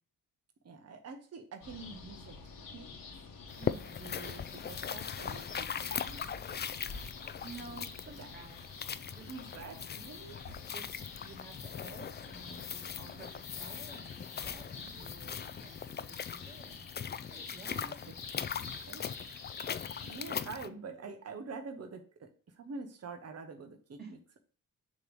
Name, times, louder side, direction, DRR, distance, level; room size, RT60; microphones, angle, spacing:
voice 1, 0.6-2.4 2.7-2.9 3.7-6.2 6.5-6.6 7.6-8.3 9.3-10.4 13.1-13.2 14.7-14.9 17.7-18.2 18.6-19.1 20.0-24.2, right 4 dB, 45° right, 5 dB, 1.0 m, -47 dB
sound 1, 1.6-20.4, left 4 dB, 70° left, 1.4 m, -49 dB
sound 2, 3.5-20.7, left 7 dB, 30° left, 0.4 m, -40 dB
voice 2, 7.4-8.8 9.1-9.8 10.7-16.8 17.3-17.9 24.0-24.1, right 4 dB, 30° right, -1 dB, 2.3 m, -52 dB
6.7 x 3.2 x 5.3 m, 0.42 s
cardioid pair, 85°, 35 cm